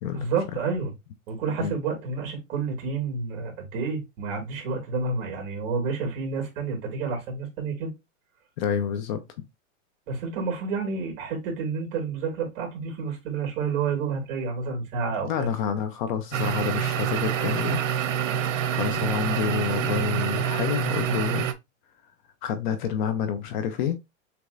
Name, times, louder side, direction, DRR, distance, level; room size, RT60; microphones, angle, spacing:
voice 1, 0.1-0.9 1.3-7.9 10.1-15.5, right 5 dB, 45° right, 2.6 m, -29 dB
voice 2, 8.6-9.2 15.2-17.8 18.7-21.5 22.4-24.0, left 8 dB, 40° left, 0.6 m, -28 dB
sound 1, 16.3-21.5, right 9 dB, 85° right, 0.9 m, -26 dB
6.7 x 3.0 x 2.5 m
supercardioid pair, 160°, 39 cm